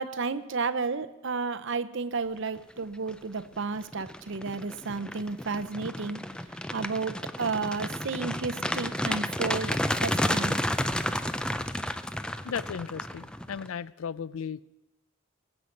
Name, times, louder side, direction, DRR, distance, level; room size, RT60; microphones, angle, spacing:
voice 1, 0.0-6.2 6.7-10.6, right 4 dB, 60° right, 0.7 m, -32 dB
sound 1, 2.8-3.1 3.6-13.7, left 1 dB, 5° left, 0.4 m, -31 dB
voice 2, 12.4-14.6, left 7 dB, 85° left, 0.4 m, -36 dB
20.5 x 8.0 x 5.2 m
head